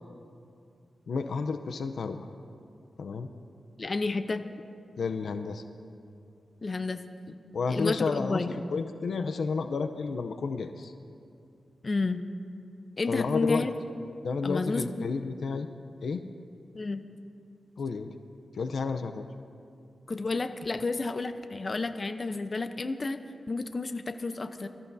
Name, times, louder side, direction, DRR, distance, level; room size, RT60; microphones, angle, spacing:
voice 1, 1.1-2.2 3.0-3.3 5.0-5.6 7.5-8.4 8.7-10.9 13.1-13.7 14.2-15.7 16.0-16.2 17.8-18.1 18.5-19.2, left 4 dB, 75° left, 8 dB, 0.6 m, -31 dB
voice 2, 3.8-4.4 6.6-7.0 7.3-7.4 7.7-8.6 11.8-12.2 13.0-13.7 14.4-15.1 16.7-17.0 20.1-23.2 23.5-24.7, left 3 dB, 40° left, 8 dB, 0.8 m, -31 dB
25.5 x 14.0 x 2.7 m, 2.5 s
cardioid pair, 70°, 0 cm